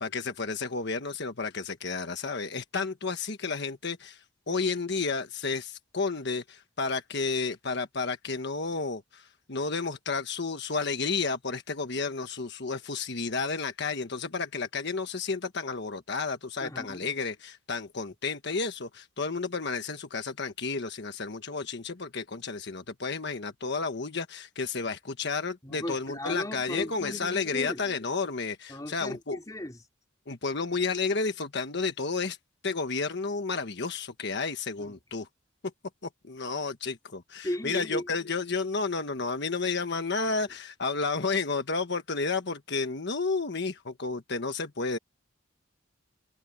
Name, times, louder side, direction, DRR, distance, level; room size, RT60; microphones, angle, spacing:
voice 1, 0.0-4.2 4.5-29.4 30.3-32.4 32.6-35.3 36.2-45.0, left 4 dB, 60° left, 1.4 m, -31 dB
voice 2, 16.6-17.1 25.6-27.8 28.7-29.8 34.8-34.9 37.4-38.1, left 1 dB, 20° left, 3.4 m, -36 dB
head